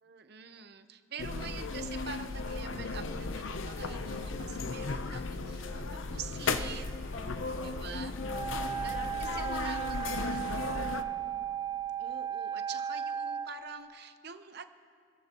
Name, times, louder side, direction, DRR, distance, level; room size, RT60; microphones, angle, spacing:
voice 1, 0.0-6.9 7.6-8.1 8.8-10.0 10.3-10.7 12.0-14.6, right 6 dB, 55° right, 9 dB, 0.8 m, -46 dB
sound 1, 1.2-11.0, left 3 dB, 85° left, 0.7 m, -36 dB
voice 2, 7.1-8.0 8.3-11.1, left 1 dB, 70° left, 1 dB, 1.8 m, -48 dB
Wind instrument woodwind instrument, 8.2-13.5, right 8 dB, 20° right, 0.5 m, -35 dB
27.5 x 15.0 x 3.0 m, 2.2 s
head